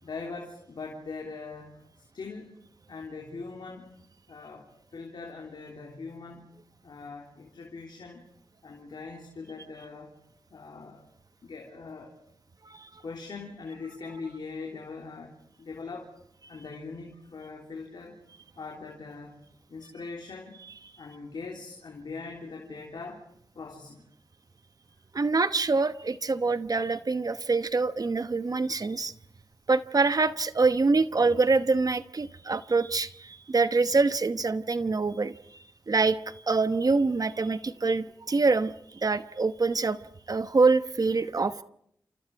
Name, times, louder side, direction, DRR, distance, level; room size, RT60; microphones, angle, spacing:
voice 1, 0.0-2.5 2.9-3.9 4.3-6.5 6.8-8.2 8.6-10.2 10.5-11.1 11.4-12.1 13.0-16.1 16.5-18.2 18.6-19.4 19.7-20.6 21.0-23.2 23.5-24.1, left 4 dB, 80° left, 3.3 m, -41 dB
voice 2, 25.1-29.1 29.7-35.3 35.9-40.0 40.3-41.6, right 3 dB, 55° right, 1.0 m, -25 dB
28.5 x 28.5 x 4.7 m
cardioid pair, 45°, 8 cm